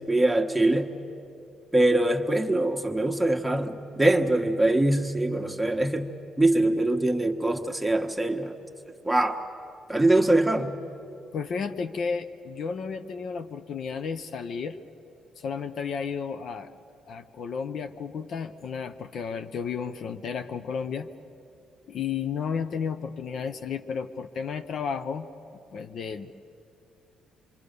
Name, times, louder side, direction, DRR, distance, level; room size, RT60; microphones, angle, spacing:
voice 1, 0.1-0.9 1.7-6.1 6.4-8.5 9.0-9.4 9.9-10.8, right 1 dB, 5° right, 2 dB, 1.5 m, -23 dB
voice 2, 11.3-14.8 15.4-16.7 17.1-21.1 21.9-25.3 25.7-26.3, left 6 dB, 65° left, 9 dB, 0.8 m, -32 dB
26.5 x 23.5 x 6.8 m, 2.8 s
cardioid pair, 90°, 0 cm